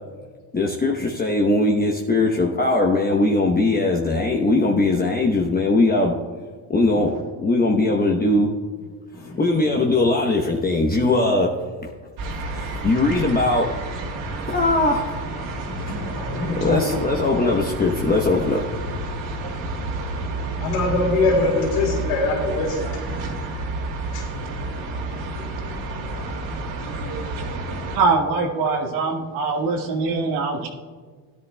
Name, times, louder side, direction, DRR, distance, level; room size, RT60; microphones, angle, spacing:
voice 1, 0.5-6.1 6.7-8.5 9.4-11.5 12.5-13.7 14.5-15.1 16.6-18.6, left 2 dB, 20° left, 0 dB, 0.9 m, -20 dB
sound 1, 12.2-28.0, right 2 dB, 60° right, 2.5 m, -30 dB
voice 2, 15.7-16.9 20.2-23.0 24.1-24.2 25.3-25.5, left 2 dB, 80° left, -3 dB, 3.4 m, -24 dB
voice 3, 27.9-30.7, right 4 dB, 80° right, -1 dB, 1.7 m, -22 dB
16.5 x 10.5 x 2.3 m, 1.5 s
supercardioid pair, 95°, 49 cm